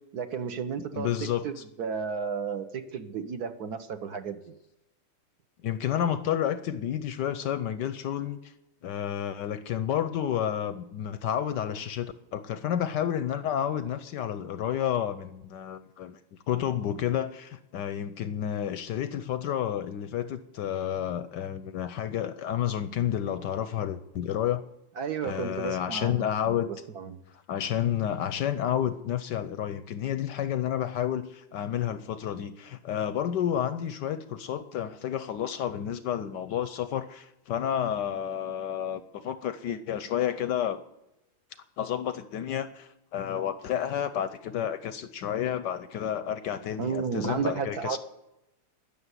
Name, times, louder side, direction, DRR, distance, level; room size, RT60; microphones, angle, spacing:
voice 1, 0.1-1.1 1.4-4.5 25.0-26.6 26.9-27.2 46.8-48.0, right 6 dB, 55° right, 8 dB, 1.3 m, -33 dB
voice 2, 0.9-1.6 5.6-8.5 8.8-16.2 16.5-24.6 25.2-26.7 27.5-40.8 41.8-48.0, left 10 dB, 70° left, 13 dB, 1.1 m, -30 dB
17.0 x 6.9 x 9.8 m, 0.90 s
omnidirectional pair, 2.4 m